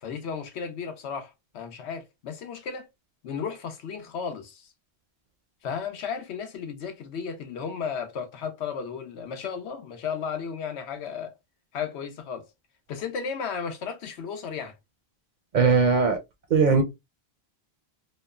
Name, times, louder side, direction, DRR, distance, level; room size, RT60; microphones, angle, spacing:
voice 1, 0.0-2.9 3.2-4.7 5.6-11.3 11.7-12.5 12.9-14.8, left 6 dB, 90° left, 1.0 m, -34 dB
voice 2, 15.5-16.2 16.5-16.8, right 5 dB, 55° right, 0.5 m, -19 dB
2.9 x 2.0 x 2.2 m
omnidirectional pair, 1.1 m